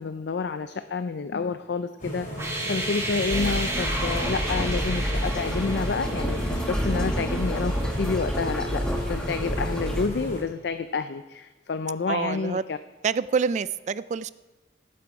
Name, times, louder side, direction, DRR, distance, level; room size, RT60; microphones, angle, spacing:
voice 1, 0.0-2.3 2.7-12.8, left 4 dB, 70° left, 10 dB, 0.4 m, -29 dB
sound 1, 2.0-10.4, right 1 dB, 45° left, 4.1 m, -35 dB
sound 2, 2.3-9.2, right 1 dB, 15° right, 1.8 m, -34 dB
sound 3, 3.3-10.1, equal, 5° left, 1.2 m, -29 dB
voice 2, 12.1-12.6 13.0-14.3, right 5 dB, 40° right, 17 dB, 0.3 m, -26 dB
18.0 x 7.8 x 4.7 m, 1.2 s
head